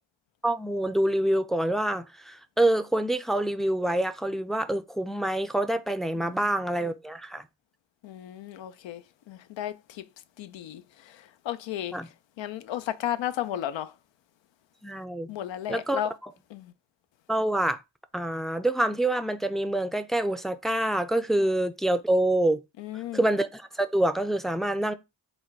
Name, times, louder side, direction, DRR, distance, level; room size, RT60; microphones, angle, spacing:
voice 1, 0.4-7.4 11.9-12.1 14.8-15.3 15.7-16.3 17.3-17.8 18.1-22.6 23.1-24.9, right 1 dB, ahead, 0.5 m, -26 dB
voice 2, 6.2-6.5 8.0-10.0 10.4-12.0 12.4-13.9 15.3-16.1 16.5-16.7 22.8-23.2, left 11 dB, 70° left, 0.6 m, -34 dB
4.2 x 2.2 x 4.6 m
supercardioid pair, 40°, 46 cm